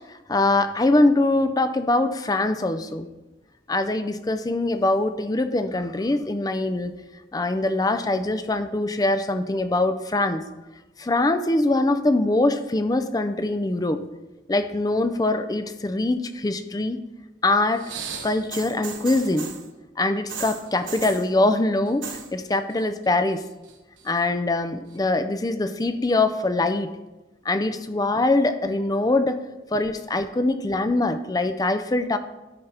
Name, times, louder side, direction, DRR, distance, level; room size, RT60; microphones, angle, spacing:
voice 1, 0.3-3.1 3.7-6.9 7.3-10.4 11.0-14.0 14.5-17.0 17.4-17.8 18.2-19.5 20.0-23.4 24.0-26.9 27.5-29.4 29.7-32.2, left 2 dB, 20° left, 10 dB, 0.4 m, -23 dB
sound 1, 17.7-19.7 20.3-21.3 21.9-22.3 22.5-23.1 23.4-24.2 24.9-25.0, right 7 dB, 90° right, 1.1 m, -36 dB
13.0 x 5.7 x 3.4 m, 1.1 s
head